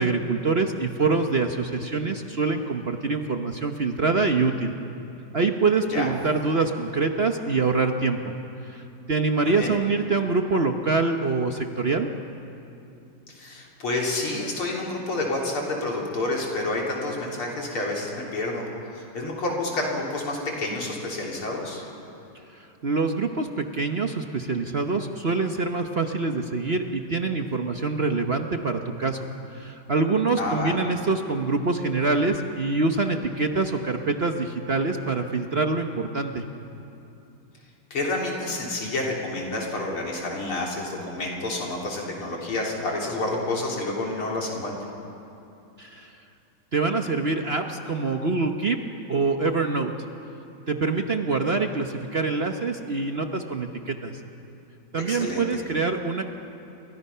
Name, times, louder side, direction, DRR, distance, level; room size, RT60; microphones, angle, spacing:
voice 1, 0.0-4.7 5.3-8.3 8.7-8.8 9.1-12.1 22.8-29.3 29.5-36.4 45.8-46.1 46.7-48.8 49.1-49.9 50.7-54.1 54.9-56.2, right 3 dB, 45° right, 5 dB, 0.8 m, -25 dB
voice 2, 9.4-9.8 13.3-18.7 18.9-21.8 30.4-30.7 37.9-44.8 55.1-55.6, left 2 dB, 80° left, -2 dB, 4.4 m, -29 dB
29.0 x 23.5 x 5.7 m, 2.8 s
omnidirectional pair, 2.3 m